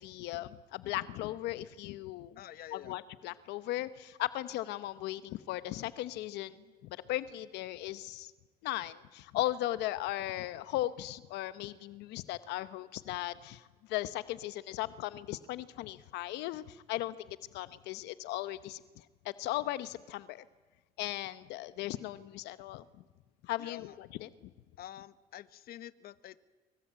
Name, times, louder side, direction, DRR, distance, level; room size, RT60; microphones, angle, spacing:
voice 1, 0.0-2.4 2.7-6.6 6.8-8.3 8.6-18.8 19.2-20.4 21.0-22.8 23.4-24.3, left 15 dB, 90° left, 14 dB, 1.0 m, -37 dB
voice 2, 2.4-3.0 23.6-24.0 24.8-26.4, left 12 dB, 65° left, 15 dB, 1.1 m, -47 dB
25.0 x 24.5 x 8.9 m, 1.3 s
cardioid pair, 110°, 17 cm